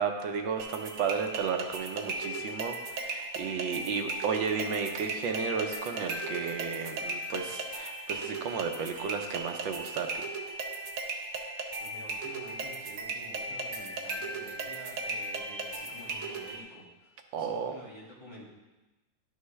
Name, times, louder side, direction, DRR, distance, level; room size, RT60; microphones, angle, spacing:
voice 1, 0.0-10.3 17.3-17.8, right 6 dB, 85° right, 4 dB, 1.5 m, -33 dB
sound 1, 0.6-16.6, right 2 dB, 60° right, 0.9 m, -37 dB
voice 2, 11.8-18.4, equal, 15° left, -6 dB, 1.8 m, -49 dB
11.0 x 5.9 x 3.2 m, 1.1 s
omnidirectional pair, 2.1 m